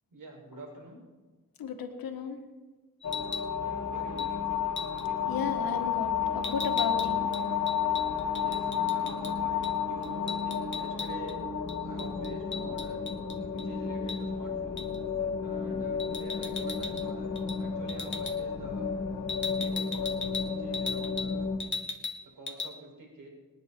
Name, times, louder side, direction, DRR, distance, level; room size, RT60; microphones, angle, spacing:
voice 1, 0.1-1.0 3.6-4.4 8.3-11.4 11.8-13.0 13.5-14.8 15.4-18.9 19.5-21.5 22.4-23.3, right 2 dB, 70° right, -1 dB, 6.7 m, -47 dB
voice 2, 1.6-2.4 5.3-6.1 6.3-7.3, left 6 dB, 90° left, 5 dB, 1.8 m, -34 dB
sound 1, 3.0-21.6, left 6 dB, 50° left, 2.4 m, -32 dB
sound 2, 3.0-3.5 4.2-4.3 4.8-5.1 6.4-9.3 9.6-9.8 10.0-11.4 11.7-13.7 14.1-14.2 14.8-15.0 16.0-17.1 17.4-17.6 17.9-18.4 19.3-21.3 21.6-22.2 22.5-22.7, left 4 dB, 35° left, 1.3 m, -37 dB
26.0 x 9.5 x 4.6 m, 1.2 s
cardioid pair, 65°, 34 cm